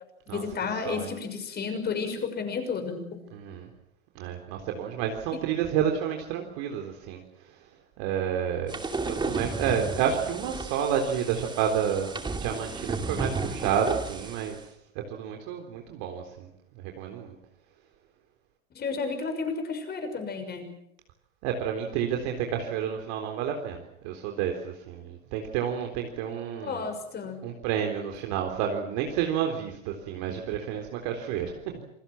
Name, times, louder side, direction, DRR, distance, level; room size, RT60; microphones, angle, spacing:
voice 1, 0.3-3.2 5.3-5.4 18.7-20.7 26.6-27.4, left 5 dB, 25° left, 7 dB, 6.2 m, -32 dB
voice 2, 3.3-3.7 4.2-7.6 8.0-8.7 9.0-14.6 15.1-16.5 16.8-17.4 21.4-26.9 27.4-31.5, right 8 dB, 50° right, 3 dB, 3.9 m, -30 dB
sound 1, 8.7-14.6, right 3 dB, 10° right, 2.4 m, -34 dB
28.0 x 20.0 x 7.6 m, 0.78 s
hypercardioid pair, 125°, 40 cm